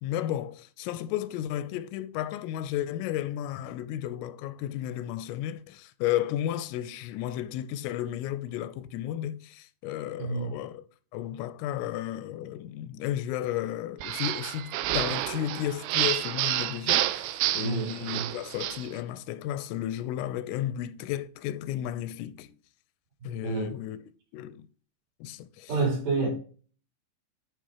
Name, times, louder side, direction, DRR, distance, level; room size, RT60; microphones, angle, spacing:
voice 1, 0.0-10.9 11.1-22.5 23.3-24.0 24.3-24.7 25.2-25.8, left 12 dB, 85° left, 3.3 m, -33 dB
voice 2, 10.2-10.6 17.6-18.3 23.4-23.7 25.7-26.3, right 3 dB, 60° right, 5.9 m, -28 dB
sound 1, 14.0-18.9, right 14 dB, 80° right, 2.9 m, -29 dB
10.5 x 5.2 x 4.6 m
omnidirectional pair, 5.7 m